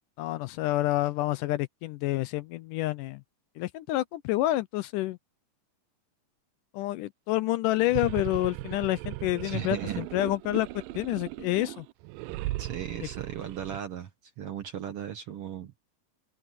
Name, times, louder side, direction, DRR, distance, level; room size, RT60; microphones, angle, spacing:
voice 1, 0.2-3.2 3.6-5.2 6.7-11.9, left 16 dB, 80° left, 2.0 m, -28 dB
sound 1, 7.7-13.8, right 18 dB, 85° right, 2.3 m, -37 dB
voice 2, 9.4-10.0 12.6-14.1 14.4-15.7, right 9 dB, 60° right, 1.5 m, -37 dB
open air
omnidirectional pair, 4.1 m